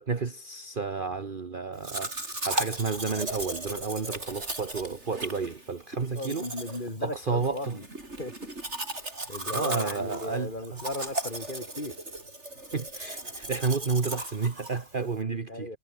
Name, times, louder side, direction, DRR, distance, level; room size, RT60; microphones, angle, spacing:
voice 1, 0.0-2.1 2.4-6.5 7.0-7.8 9.5-10.8 12.7-15.7, right 5 dB, 40° right, 1.5 m, -31 dB
Domestic sounds home sounds, 1.8-15.2, right 2 dB, 55° right, 6.2 m, -37 dB
voice 2, 6.1-7.8 8.2-8.4 9.3-12.0 15.5-15.8, left 1 dB, 35° left, 5.2 m, -36 dB
omnidirectional pair, 1.4 m